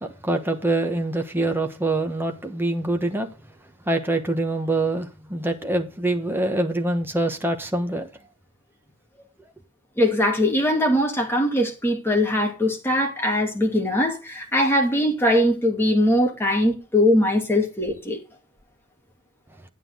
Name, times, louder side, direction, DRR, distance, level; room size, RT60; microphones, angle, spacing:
voice 1, 0.0-3.3 3.9-8.1, right 2 dB, 10° right, 1.2 m, -25 dB
voice 2, 10.0-18.2, left 1 dB, 10° left, 2.4 m, -21 dB
9.4 x 9.0 x 3.8 m
head